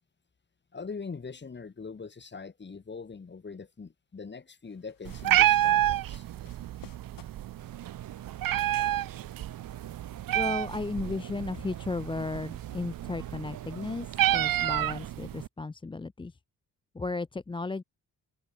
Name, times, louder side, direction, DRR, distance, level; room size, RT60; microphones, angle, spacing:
voice 1, 0.7-6.2, left 5 dB, 30° left, 4.2 m, -42 dB
sound 1, 4.6-12.1, left 10 dB, 75° left, 6.5 m, -60 dB
Meow, 5.0-15.5, right 13 dB, 75° right, 0.8 m, -29 dB
sound 2, 7.6-15.1, right 10 dB, 60° right, 1.2 m, -48 dB
voice 2, 10.3-16.4 16.9-17.8, left 3 dB, 15° left, 0.6 m, -35 dB
cardioid pair, 130°, 34 cm